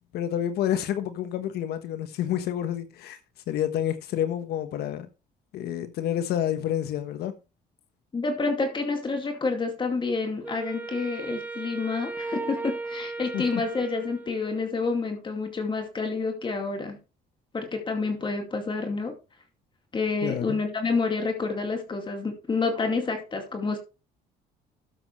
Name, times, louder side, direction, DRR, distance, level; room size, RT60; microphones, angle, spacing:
voice 1, 0.1-3.2 3.5-5.1 5.5-7.3 13.3-13.4 20.2-20.6, left 10 dB, 75° left, 1.3 m, -29 dB
voice 2, 8.1-17.0 17.5-19.1 19.9-23.8, left 4 dB, 30° left, 2.4 m, -28 dB
Wind instrument woodwind instrument, 10.4-14.8, right 3 dB, 10° right, 1.4 m, -36 dB
12.5 x 7.5 x 3.3 m
cardioid pair, 110°, 17 cm